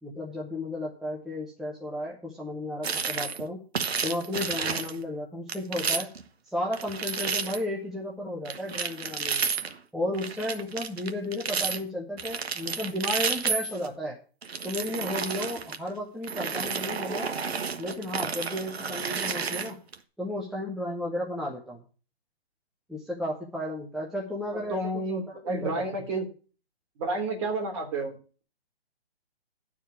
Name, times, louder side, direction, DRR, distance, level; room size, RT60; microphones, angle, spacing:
voice 1, 0.0-3.6 4.0-6.1 6.4-9.5 9.9-14.2 14.6-17.3 17.8-19.8 20.2-21.8 22.9-24.8 25.1-26.0, left 1 dB, ahead, -4 dB, 0.9 m, -33 dB
sound 1, 2.8-3.4 3.7-5.0 5.5-6.2 6.7-7.6 8.5-9.8 10.1-11.8 12.2-13.9 14.4-15.8 16.2-19.9, right 5 dB, 80° right, 1.3 m, -31 dB
voice 2, 24.7-26.2 27.0-28.4, right 2 dB, 30° right, 2 dB, 2.9 m, -31 dB
11.0 x 4.9 x 8.3 m, 0.38 s
hypercardioid pair, 150°, 31 cm